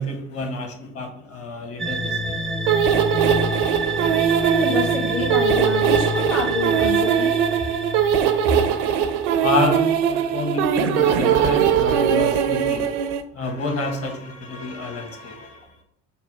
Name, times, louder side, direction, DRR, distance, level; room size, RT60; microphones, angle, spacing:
voice 1, 0.0-2.4 9.4-12.9 13.3-15.8, left 2 dB, 40° left, 4 dB, 1.3 m, -28 dB
sound 1, 1.8-9.3, right 1 dB, ahead, 0.6 m, -28 dB
sound 2, 2.7-13.2, right 8 dB, 60° right, 0.6 m, -20 dB
voice 2, 4.4-7.4 9.0-9.2, left 2 dB, 90° left, -5 dB, 1.7 m, -27 dB
5.6 x 2.2 x 4.3 m, 0.72 s
hypercardioid pair, 65°, 38 cm